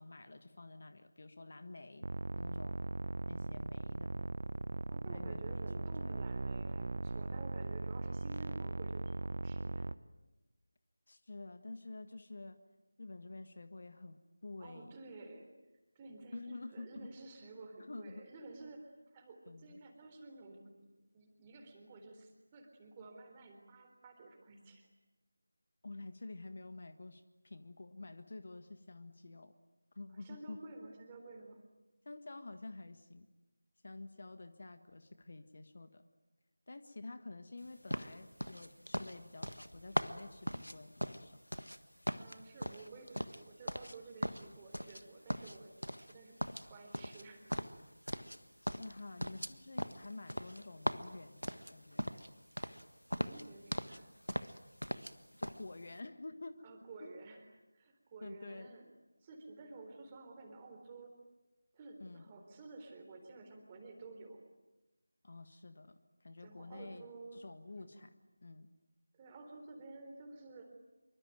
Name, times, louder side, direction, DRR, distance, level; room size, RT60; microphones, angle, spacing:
voice 1, 0.0-2.1 2.4-2.8 3.3-4.1 5.0-6.1 11.1-12.6 13.0-15.0 16.3-17.1 17.9-18.2 19.5-19.8 25.8-29.5 29.9-30.6 32.0-33.3 33.8-36.0 36.7-41.4 48.6-52.1 55.4-56.6 57.0-57.1 58.2-58.8 62.0-62.3 65.2-67.1 67.3-68.1 68.4-68.7, left 2 dB, 45° left, 10 dB, 1.6 m, -49 dB
sound 1, 2.0-9.9, right 2 dB, 45° right, 0.9 m, -39 dB
voice 2, 4.9-9.9 14.6-15.5 16.0-24.9 30.2-31.6 42.1-45.7 46.0-46.4 46.7-47.5 53.1-54.1 56.6-58.9 59.2-61.2 61.7-64.4 66.4-67.4 67.7-68.0 69.1-70.7, right 3 dB, 15° right, 3 dB, 3.7 m, -52 dB
sound 2, 37.9-41.8 42.0-44.0 44.2-45.0 45.3-46.1 46.4-48.4 48.7-52.3 52.6-52.8 53.1-54.0 54.3-55.1 55.4-55.6, equal, 90° left, 1.5 m, -39 dB
26.5 x 24.5 x 9.2 m, 1.1 s
figure-of-eight pair, 165°, 0 cm